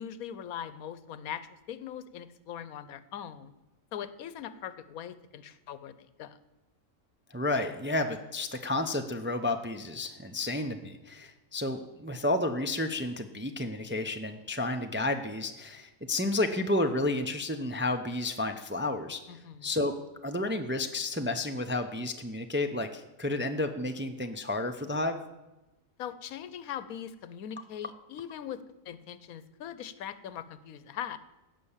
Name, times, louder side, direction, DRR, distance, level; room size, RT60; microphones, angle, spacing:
voice 1, 0.0-3.5 3.9-6.4 19.3-19.7 26.0-31.2, left 9 dB, 90° left, 14 dB, 1.2 m, -41 dB
voice 2, 7.3-19.2 19.6-19.9 20.2-25.2, left 2 dB, 15° right, 6 dB, 0.4 m, -31 dB
16.5 x 6.1 x 7.2 m, 1.0 s
omnidirectional pair, 1.5 m